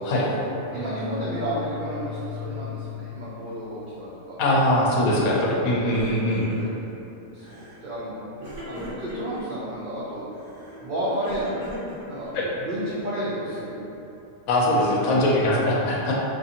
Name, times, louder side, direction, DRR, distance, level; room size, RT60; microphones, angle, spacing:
voice 1, 0.0-4.4 5.1-6.0 6.3-6.7 7.3-10.3 10.8-11.6 12.1-12.3 12.6-13.8, right 1 dB, 80° right, -9 dB, 0.4 m, -32 dB
sound 1, 0.7-4.1, left 7 dB, 40° left, 0.9 m, -37 dB
voice 2, 4.4-6.5 12.3-12.5 14.5-16.1, left 1 dB, 80° left, -3 dB, 1.0 m, -21 dB
Crying sobbing, 5.2-5.6 5.8-6.9 7.4-7.8 8.4-9.4 10.3-12.6, equal, 35° right, 0.6 m, -40 dB
2.6 x 2.4 x 2.7 m, 2.9 s
omnidirectional pair, 1.4 m